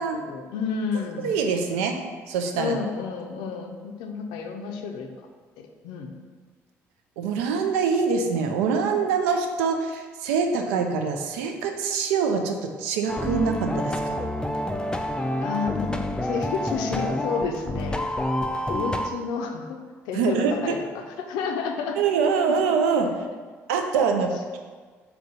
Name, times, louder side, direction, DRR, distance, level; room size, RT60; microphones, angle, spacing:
voice 1, 0.0-1.3 2.5-5.1 5.6-6.1 15.4-18.0 18.4-19.8 20.1-22.0 22.5-22.6 23.0-23.4 24.1-24.3, left 5 dB, 75° left, 4 dB, 0.4 m, -31 dB
voice 2, 1.2-2.0 2.3-2.8 7.2-14.2 20.1-20.7 22.0-23.2 23.7-24.6, right 5 dB, 80° right, 4 dB, 0.4 m, -24 dB
sound 1, 13.1-19.1, left 1 dB, 10° left, 0.3 m, -28 dB
3.6 x 2.3 x 4.0 m, 1.5 s
hypercardioid pair, 55°, 7 cm